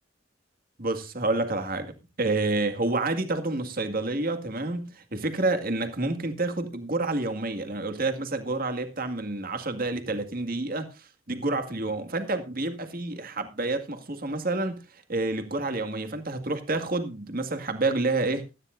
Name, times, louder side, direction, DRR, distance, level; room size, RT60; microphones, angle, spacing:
voice 1, 0.8-14.8 15.1-18.5, right 2 dB, 50° right, 2.1 m, -29 dB
16.0 x 13.0 x 2.6 m
head